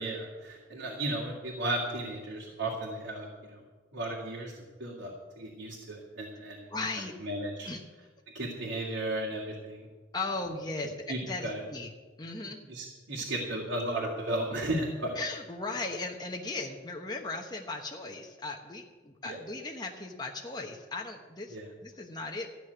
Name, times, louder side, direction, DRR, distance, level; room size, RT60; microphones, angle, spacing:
voice 1, 0.0-3.6 3.9-6.7 7.2-7.7 8.3-9.9 11.1-11.6 12.7-15.2 19.2-19.4 21.5-21.7, right 1 dB, 85° right, -4 dB, 2.3 m, -35 dB
voice 2, 6.7-7.1 7.6-7.8 10.1-11.9 12.2-12.6 15.2-21.6 21.8-22.5, left 3 dB, 20° left, 1 dB, 1.0 m, -37 dB
14.0 x 6.3 x 9.6 m, 1.3 s
head